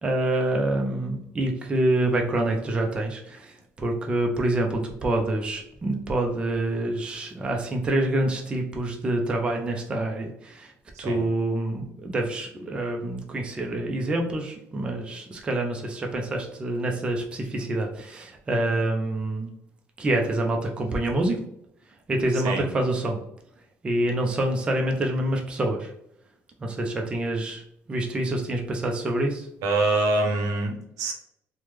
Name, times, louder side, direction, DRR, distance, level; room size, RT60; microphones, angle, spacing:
voice 1, 0.0-10.7 11.0-19.5 20.0-21.4 22.1-23.2 23.8-25.9 26.6-27.6 27.9-29.5, right 1 dB, 20° right, 2 dB, 0.4 m, -26 dB
voice 2, 29.6-31.1, right 2 dB, 90° right, 2 dB, 0.6 m, -25 dB
3.2 x 2.1 x 3.2 m, 0.77 s
cardioid pair, 165°, 5 cm